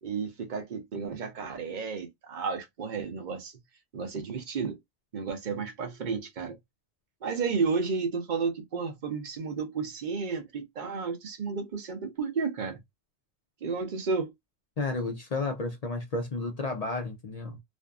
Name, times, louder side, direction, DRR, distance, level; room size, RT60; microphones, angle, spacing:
voice 1, 0.0-3.6 3.9-4.8 5.1-6.6 7.2-12.8 13.6-14.3, right 5 dB, 50° right, 0.7 m, -32 dB
voice 2, 14.8-17.6, left 3 dB, 55° left, 0.4 m, -32 dB
2.5 x 2.4 x 2.3 m
omnidirectional pair, 1.1 m